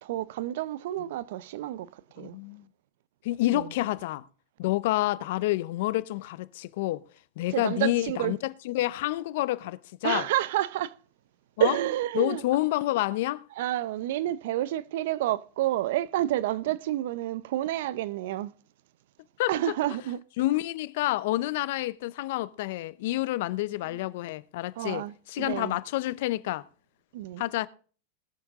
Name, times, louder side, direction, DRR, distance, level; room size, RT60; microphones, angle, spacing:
voice 1, 0.0-1.9 2.2-2.4 3.5-3.7 7.5-8.4 10.0-10.9 11.6-12.4 13.6-18.5 19.5-20.2 24.8-25.7 27.1-27.4, right 14 dB, 65° right, 0.7 m, -29 dB
voice 2, 2.2-2.7 3.2-4.2 4.6-7.0 7.4-10.3 11.6-11.8 12.1-13.4 19.4-19.5 20.4-26.7 27.4-27.7, left 16 dB, 65° left, 0.7 m, -28 dB
20.5 x 7.2 x 3.7 m
hypercardioid pair, 110°, 0 cm